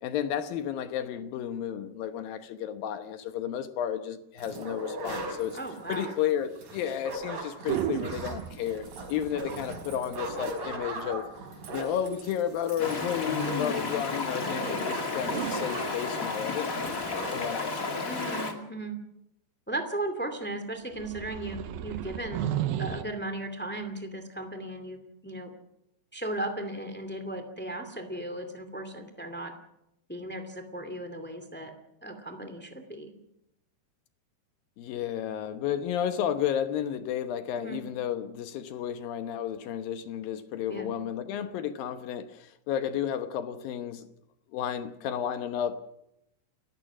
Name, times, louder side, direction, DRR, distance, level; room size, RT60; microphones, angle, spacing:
voice 1, 0.0-5.6 5.9-11.2 11.7-17.9 34.8-44.1 44.5-45.8, left 9 dB, 70° left, 2.5 m, -32 dB
sound 1, 4.4-17.6 17.8-17.9 18.1-18.5, right 2 dB, 50° right, 6.3 m, -40 dB
voice 2, 5.5-6.1 14.3-14.9 18.0-19.0 19.7-22.4 22.8-25.5 26.1-29.5 30.1-31.7 32.0-33.1 37.6-37.8 40.7-40.9, right 1 dB, 5° left, 0.7 m, -36 dB
sound 2, 7.7-12.0 15.2-17.6 20.9-23.0, right 11 dB, 70° right, 2.4 m, -35 dB
Stream, 12.8-18.5, left 3 dB, 35° left, 1.3 m, -32 dB
30.0 x 15.5 x 6.1 m
omnidirectional pair, 5.0 m